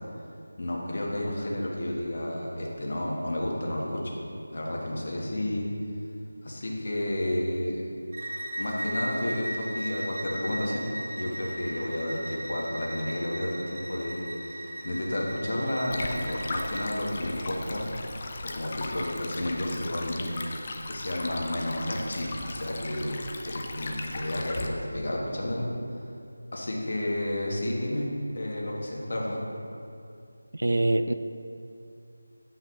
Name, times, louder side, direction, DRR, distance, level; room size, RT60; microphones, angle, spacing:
voice 1, 0.6-4.0 4.5-5.7 6.4-7.8 8.6-10.9 11.2-17.9 18.4-20.3 20.8-23.2 23.4-25.7 26.5-29.4, left 1 dB, 55° left, -3 dB, 1.3 m, -31 dB
Bowed string instrument, 8.1-16.9, right 1 dB, 55° right, 1.1 m, -37 dB
Stream, 15.9-24.7, left 2 dB, 30° left, 0.4 m, -38 dB
voice 2, 30.5-31.1, right 2 dB, 75° right, 10 dB, 0.3 m, -24 dB
8.3 x 5.5 x 3.1 m, 2.6 s
figure-of-eight pair, 170°, 0 cm